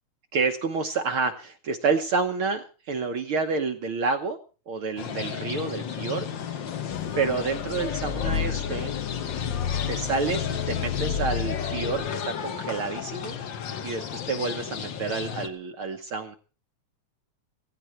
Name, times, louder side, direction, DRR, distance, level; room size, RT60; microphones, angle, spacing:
voice 1, 0.3-4.4 4.7-6.2 7.2-8.9 9.9-13.4 13.8-16.4, right 4 dB, 55° right, 6 dB, 1.7 m, -29 dB
sound 1, 5.0-15.5, left 8 dB, 55° left, 1.5 m, -33 dB
sound 2, 6.9-12.1, left 8 dB, 70° left, 0.7 m, -32 dB
16.5 x 16.5 x 4.5 m, 0.35 s
omnidirectional pair, 3.3 m